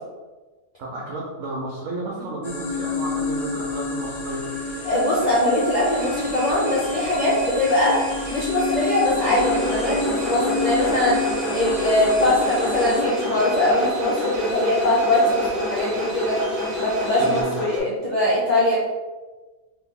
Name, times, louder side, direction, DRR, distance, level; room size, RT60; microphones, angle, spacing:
voice 1, 0.8-4.5 17.2-17.6, right 2 dB, 70° right, -2 dB, 1.0 m, -32 dB
sound 1, 2.4-13.0, left 3 dB, 90° left, 0.3 m, -29 dB
sound 2, 4.2-17.4, right 2 dB, 40° right, 0.6 m, -38 dB
voice 2, 4.8-8.0 8.3-11.2 11.5-16.4 16.8-18.8, left 1 dB, 45° left, -7 dB, 0.6 m, -21 dB
sound 3, 9.1-17.8, left 2 dB, ahead, 1.0 m, -28 dB
3.0 x 2.8 x 3.6 m, 1.2 s
omnidirectional pair, 1.4 m